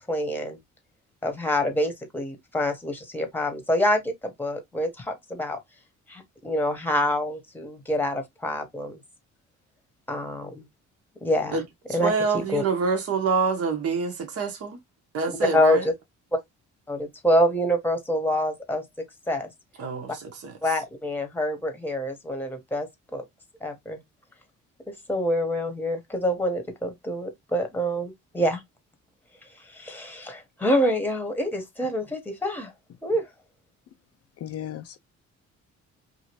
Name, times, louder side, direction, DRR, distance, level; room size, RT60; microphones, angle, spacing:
voice 1, 0.1-0.6 1.2-5.6 6.1-9.0 10.1-10.7 11.2-11.6 11.9-12.6 15.5-15.9 16.3-16.4 16.9-18.8 19.3-19.5 20.6-23.2 23.6-24.0 25.1-28.6 29.7-32.7 33.0-33.3, equal, 5° left, 1.0 m, -26 dB
voice 2, 11.9-14.8 15.1-15.9 19.8-20.6, right 4 dB, 50° right, 0.9 m, -26 dB
voice 3, 34.4-35.0, left 11 dB, 55° left, 0.4 m, -35 dB
2.8 x 2.6 x 2.9 m
cardioid pair, 90°, 30 cm